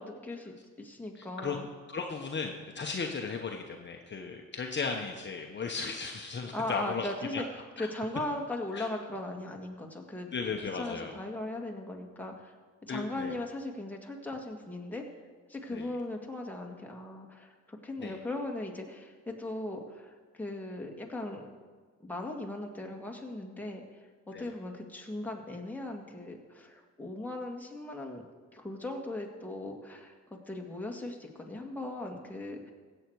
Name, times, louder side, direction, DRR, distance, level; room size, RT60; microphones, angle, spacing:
voice 1, 0.0-1.7 6.5-10.3 10.7-12.6 12.8-15.0 15.5-21.4 22.0-28.2 28.5-32.7, left 1 dB, 5° left, 0 dB, 1.9 m, -38 dB
voice 2, 1.2-1.6 1.9-7.4 7.8-7.9 8.7-8.9 10.3-11.1 12.9-13.3 15.7-15.9 18.0-18.1 24.3-24.5, left 5 dB, 35° left, 2 dB, 1.1 m, -36 dB
16.0 x 8.0 x 4.7 m, 1.5 s
cardioid pair, 90°, 30 cm